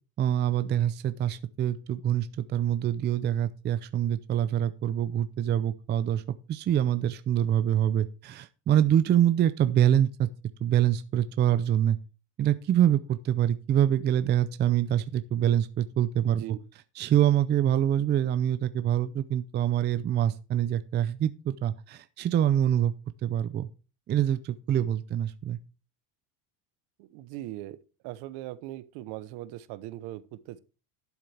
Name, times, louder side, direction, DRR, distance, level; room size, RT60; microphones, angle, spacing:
voice 1, 0.2-6.2 6.5-10.3 10.6-12.0 12.4-16.6 17.0-22.9 23.2-23.7 24.1-25.6, right 10 dB, 25° right, 0.5 m, -25 dB
voice 2, 16.2-16.6 27.0-27.8 28.0-30.6, right 15 dB, 65° right, 1.0 m, -40 dB
12.0 x 7.3 x 3.4 m
cardioid pair, 135°, 42 cm